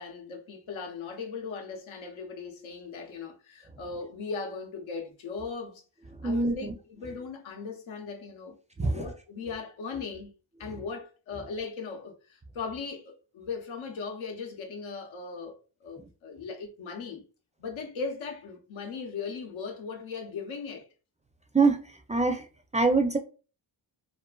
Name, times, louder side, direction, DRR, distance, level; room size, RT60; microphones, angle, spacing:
voice 1, 0.0-5.8 6.2-8.5 8.8-10.3 10.6-17.3 17.6-20.9, left 5 dB, 85° left, 0.8 m, -38 dB
voice 2, 6.2-6.7 8.8-9.0 21.5-21.8 22.1-22.4 22.7-23.2, right 3 dB, 15° right, 0.4 m, -24 dB
2.5 x 2.5 x 2.3 m
cardioid pair, 65°, 47 cm